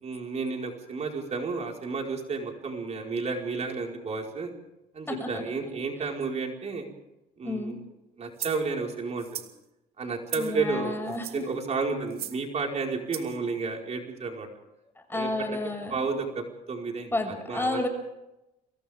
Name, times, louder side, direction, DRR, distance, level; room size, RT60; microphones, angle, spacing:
voice 1, 0.0-4.5 4.9-6.8 7.4-7.8 8.2-9.4 10.0-14.5 15.1-15.5 15.9-17.1 17.5-17.9, right 4 dB, 40° right, 1 dB, 5.0 m, -32 dB
voice 2, 5.1-5.4 6.0-6.1 7.4-7.8 10.4-11.5 15.1-16.2 17.1-17.9, left 2 dB, 15° left, 5 dB, 6.6 m, -31 dB
sound 1, 8.4-8.6 9.2-9.5 10.3-10.6 11.1-11.5 12.1-12.4 13.1-13.4, right 11 dB, 65° right, 2.9 m, -37 dB
30.0 x 26.5 x 3.7 m, 0.92 s
cardioid pair, 110°, 17 cm